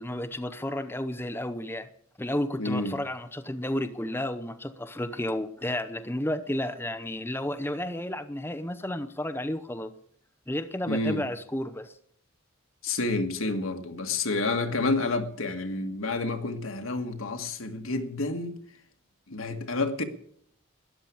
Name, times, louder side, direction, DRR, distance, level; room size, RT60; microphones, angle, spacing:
voice 1, 0.0-1.9 2.2-9.9 10.5-11.9, left 1 dB, 10° left, 0.7 m, -32 dB
voice 2, 2.6-3.0 10.9-11.2 12.8-18.6 19.3-20.0, left 2 dB, 80° left, 1.7 m, -29 dB
13.5 x 11.0 x 8.6 m
head